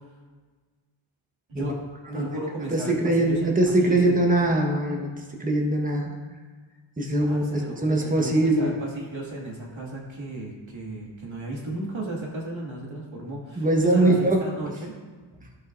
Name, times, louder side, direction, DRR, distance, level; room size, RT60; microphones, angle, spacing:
voice 1, 1.5-1.8 2.1-4.2 7.3-14.9, right 1 dB, 70° right, -3 dB, 2.2 m, -34 dB
voice 2, 2.7-6.1 7.0-8.7 13.6-14.7, right 1 dB, 15° right, 0 dB, 1.2 m, -22 dB
15.5 x 5.5 x 2.6 m, 1.4 s
wide cardioid pair, 85°, 49 cm